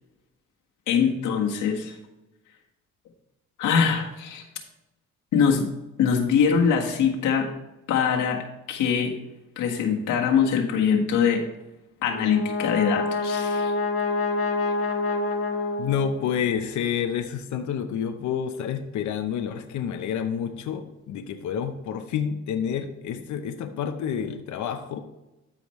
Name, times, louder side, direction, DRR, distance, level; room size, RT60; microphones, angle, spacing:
voice 1, 0.9-1.9 3.6-4.4 5.3-5.7 6.0-7.5 7.9-8.4 8.7-9.1 9.6-11.4 12.0-13.7, left 7 dB, 90° left, 1 dB, 1.6 m, -23 dB
Brass instrument, 12.1-16.5, left 3 dB, 50° left, 1.3 m, -27 dB
voice 2, 15.8-25.0, left 8 dB, 70° left, 7 dB, 0.8 m, -29 dB
13.0 x 5.1 x 3.2 m, 0.98 s
cardioid pair, 90°, 30 cm